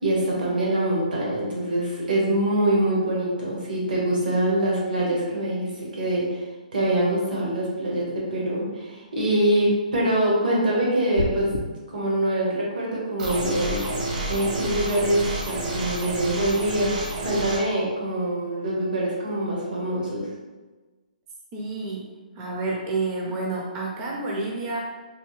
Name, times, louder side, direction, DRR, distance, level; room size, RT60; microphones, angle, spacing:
voice 1, 0.0-6.4 6.7-11.5 11.9-13.8 14.3-20.3, right 1 dB, 75° right, -4 dB, 1.2 m, -24 dB
sound 1, 11.1-11.6, left 3 dB, 80° left, 0.3 m, -27 dB
sound 2, 13.2-17.6, right 2 dB, 55° right, 0.9 m, -29 dB
voice 2, 21.5-22.0 22.4-24.8, right 3 dB, 25° right, -3 dB, 0.4 m, -29 dB
3.3 x 2.6 x 3.1 m, 1.3 s
hypercardioid pair, 150°, 5 cm